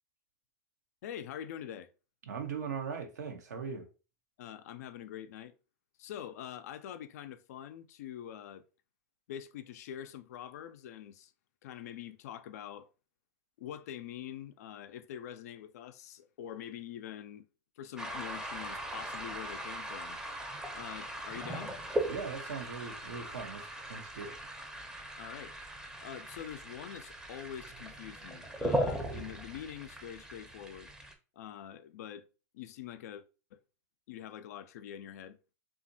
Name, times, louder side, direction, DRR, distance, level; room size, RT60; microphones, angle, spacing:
voice 1, 1.0-1.9 4.4-5.5 6.0-8.7 9.3-11.3 11.6-12.9 13.6-17.5 17.8-20.2 20.7-21.8 25.2-25.6 26.0-30.9 31.4-32.3 32.5-33.2 33.5-33.6 34.1-35.4, left 10 dB, 70° left, 0.4 m, -45 dB
voice 2, 2.2-3.9 22.1-24.4, right 6 dB, 85° right, 0.7 m, -40 dB
sound 1, 18.0-31.1, right 1 dB, 10° right, 0.5 m, -39 dB
2.8 x 2.4 x 2.6 m
hypercardioid pair, 105°, 9 cm